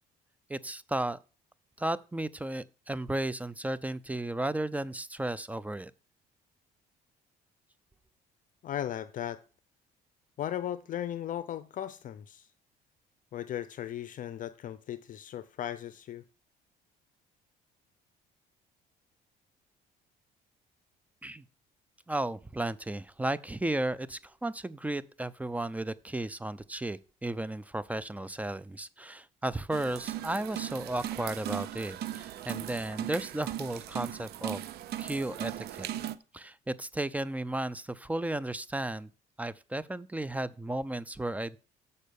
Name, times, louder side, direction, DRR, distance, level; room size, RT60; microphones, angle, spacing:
voice 1, 0.5-1.2 1.8-5.9 21.2-21.4 22.1-34.6 35.0-35.9 36.3-39.1 39.4-41.6, right 1 dB, 10° right, 0.4 m, -34 dB
voice 2, 8.6-9.4 10.4-12.5 13.3-16.2, left 11 dB, 50° left, 0.6 m, -37 dB
sound 1, 29.7-36.2, right 12 dB, 70° right, 0.6 m, -38 dB
7.5 x 5.5 x 6.8 m
cardioid pair, 110°, 17 cm